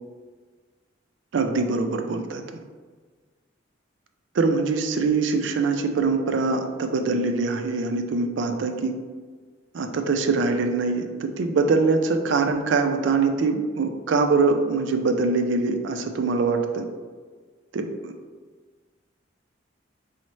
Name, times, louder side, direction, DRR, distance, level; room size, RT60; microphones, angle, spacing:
voice 1, 1.3-2.4 4.3-8.9 9.7-16.9 17.7-18.1, right 4 dB, 75° right, 6 dB, 0.4 m, -23 dB
5.1 x 2.1 x 3.1 m, 1.5 s
head